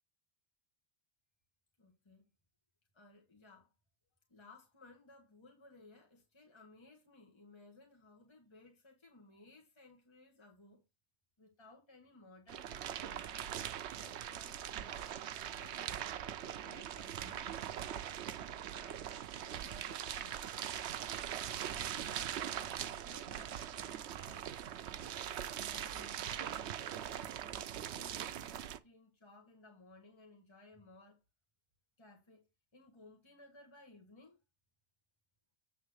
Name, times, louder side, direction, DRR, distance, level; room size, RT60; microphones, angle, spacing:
voice 1, 1.8-2.3 2.9-3.7 4.3-10.8 11.4-13.4 14.0-15.1 15.5-19.0 19.4-20.4 21.7-24.5 25.5-26.6 27.0-31.2 32.0-32.5 32.7-34.4, left 2 dB, 25° left, 1.7 m, -59 dB
sound 1, 12.5-28.8, right 10 dB, 75° right, 0.9 m, -41 dB
8.4 x 3.5 x 6.4 m
omnidirectional pair, 1.2 m